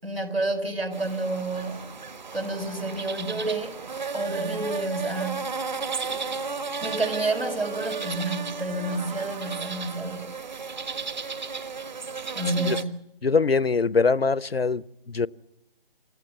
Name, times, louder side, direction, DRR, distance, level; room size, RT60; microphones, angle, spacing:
voice 1, 0.0-1.9 2.3-3.7 4.1-5.4 6.8-10.3 12.3-13.0, right 2 dB, 85° right, 5.2 m, -29 dB
sound 1, 0.9-12.8, right 4 dB, 50° right, 1.6 m, -34 dB
voice 2, 13.2-15.3, left 4 dB, 85° left, 0.8 m, -23 dB
28.0 x 15.0 x 8.6 m
figure-of-eight pair, 150°, 29 cm